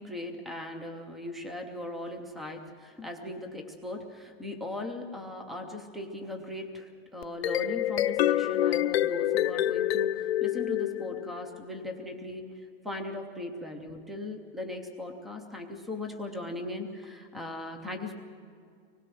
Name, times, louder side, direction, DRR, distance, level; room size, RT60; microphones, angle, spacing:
voice 1, 0.0-18.1, left 2 dB, ahead, 5 dB, 0.4 m, -38 dB
sound 1, 7.2-11.6, left 13 dB, 80° left, 0.7 m, -27 dB
25.0 x 20.0 x 6.2 m, 2.4 s
supercardioid pair, 175°, 31 cm